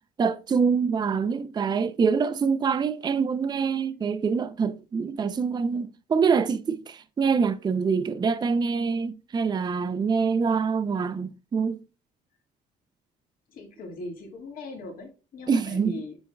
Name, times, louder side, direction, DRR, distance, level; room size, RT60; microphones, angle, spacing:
voice 1, 0.2-11.8 15.5-16.0, right 5 dB, 25° right, 0.5 m, -25 dB
voice 2, 13.5-16.2, left 3 dB, 55° left, 1.8 m, -40 dB
7.8 x 5.3 x 2.3 m
cardioid pair, 110°, 17 cm